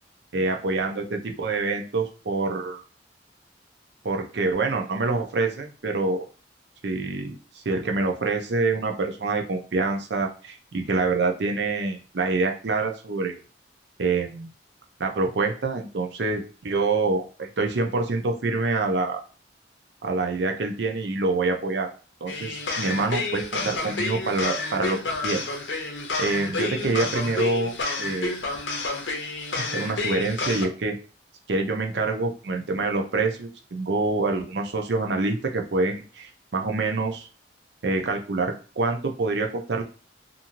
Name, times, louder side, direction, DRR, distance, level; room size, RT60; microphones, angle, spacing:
voice 1, 0.3-2.8 4.0-6.3 6.8-13.4 14.0-14.5 15.0-19.2 20.0-21.9 22.2-25.4 25.8-28.3 29.5-31.0 31.5-37.3 37.8-39.8, right 3 dB, 65° right, 3 dB, 0.6 m, -26 dB
sound 1, 22.3-30.7, left 3 dB, 75° left, 0.6 m, -30 dB
2.9 x 2.6 x 2.5 m, 0.36 s
head